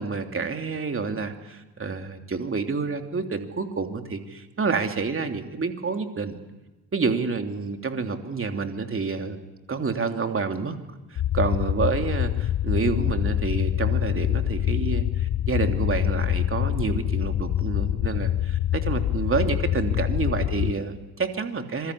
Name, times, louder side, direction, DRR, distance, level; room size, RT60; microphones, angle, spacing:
voice 1, 0.0-6.4 6.9-9.4 9.7-10.8 11.1-21.9, right 4 dB, 25° right, 5 dB, 3.1 m, -28 dB
sound 1, 11.2-20.7, left 11 dB, 35° left, 1.2 m, -25 dB
26.5 x 22.0 x 8.5 m, 1.1 s
hypercardioid pair, 60°, 49 cm